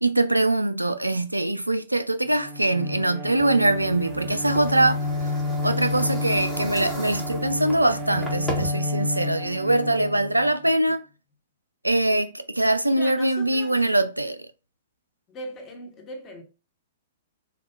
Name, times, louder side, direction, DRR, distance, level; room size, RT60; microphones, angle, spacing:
voice 1, 0.0-5.1 5.6-11.0 11.8-14.5, right 1 dB, 85° right, 0.4 m, -23 dB
Bowed string instrument, 2.3-10.7, left 2 dB, 25° right, 0.7 m, -30 dB
sound 1, 3.4-8.7, equal, ahead, 1.3 m, -37 dB
voice 2, 12.9-13.9 15.3-16.4, left 1 dB, 25° left, 1.1 m, -39 dB
4.1 x 2.3 x 2.4 m
figure-of-eight pair, 110°, 0 cm